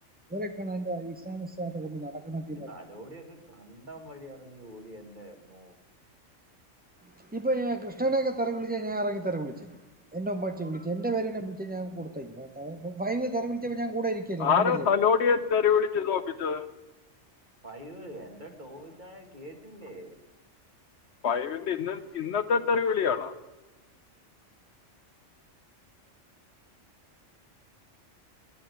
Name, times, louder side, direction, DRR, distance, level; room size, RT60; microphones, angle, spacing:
voice 1, 0.3-2.7 7.2-9.8 10.1-14.9, right 2 dB, 15° right, 6 dB, 0.3 m, -31 dB
voice 2, 2.5-5.7 17.6-20.2, right 1 dB, 40° right, 4 dB, 1.8 m, -45 dB
voice 3, 14.4-16.6 21.2-23.3, left 6 dB, 65° left, 12 dB, 0.9 m, -25 dB
11.0 x 10.0 x 9.1 m, 1.1 s
omnidirectional pair, 1.3 m